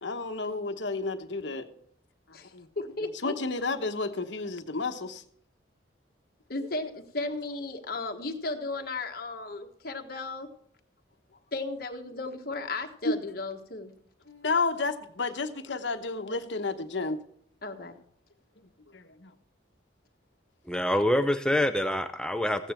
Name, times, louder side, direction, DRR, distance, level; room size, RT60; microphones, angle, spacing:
voice 1, 0.0-1.7 2.5-2.7 3.2-5.2 6.7-6.8 13.0-13.2 14.3-17.2 18.6-19.3, left 3 dB, 75° left, 7 dB, 1.1 m, -31 dB
voice 2, 2.3-3.3 6.5-10.5 11.5-13.9 17.6-18.0, left 3 dB, 55° left, 4 dB, 1.4 m, -35 dB
voice 3, 20.7-22.7, left 1 dB, 5° left, 9 dB, 0.5 m, -26 dB
15.0 x 9.2 x 4.4 m, 0.64 s
head